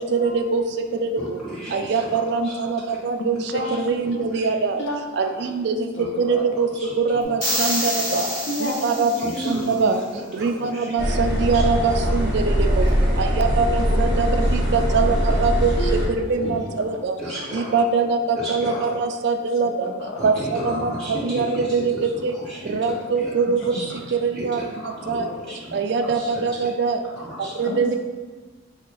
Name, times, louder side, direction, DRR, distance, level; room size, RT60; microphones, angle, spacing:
voice 1, 0.1-0.6 1.0-1.1 1.7-3.4 3.7-4.8 5.2-5.9 6.2-6.7 7.0-8.2 8.6-10.0 10.3-12.9 13.2-15.7 16.3-17.1 17.5-19.9 20.2-21.9 22.2-22.3 22.7-23.6 24.2-24.6 25.1-25.3 25.7-27.0 27.6-28.0, right 4 dB, 60° right, 6 dB, 0.3 m, -23 dB
voice 2, 1.1-2.6 2.9-3.0 3.5-3.8 4.2-4.5 6.0-6.1 6.7-7.0 9.2-10.0 10.4-10.9 11.5-11.6 12.0-12.1 16.3-16.5 17.2-17.9 18.4-19.0 20.2-22.7 23.1-23.3 23.7-23.9 24.3-26.4 27.1-27.5, right 1 dB, 5° left, -10 dB, 1.3 m, -35 dB
voice 3, 3.2-3.8 4.8-5.0 6.0-6.4 7.1-7.3 8.1-9.9 13.0-13.3 13.9-14.2 15.8-16.5 17.3-17.4 18.7-18.8 19.8-21.3 23.5-23.8 27.6-28.0, equal, 70° left, 1 dB, 0.6 m, -31 dB
sound 1, 7.4-9.7, equal, 45° left, 1.1 m, -27 dB
sound 2, 11.0-16.1, equal, 25° right, 0.7 m, -21 dB
4.3 x 2.3 x 3.7 m, 1.3 s
head